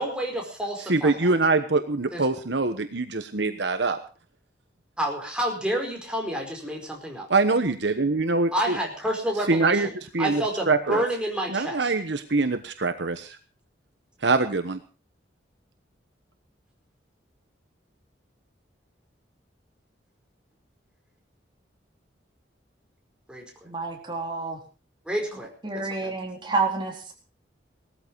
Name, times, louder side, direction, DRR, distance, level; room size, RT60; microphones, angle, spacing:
voice 1, 0.0-1.3 2.1-2.2 5.0-7.3 8.5-9.9 10.2-11.9 23.3-23.7 25.0-26.3, right 1 dB, 5° right, 0 dB, 5.0 m, -29 dB
voice 2, 0.9-4.0 7.3-8.5 9.5-9.9 10.1-10.4 10.7-11.0 11.5-13.4 14.2-14.8, right 3 dB, 65° right, 9 dB, 1.2 m, -23 dB
voice 3, 23.6-24.6 25.6-27.1, right 4 dB, 25° right, 1 dB, 4.1 m, -29 dB
18.5 x 14.0 x 4.7 m, 0.35 s
head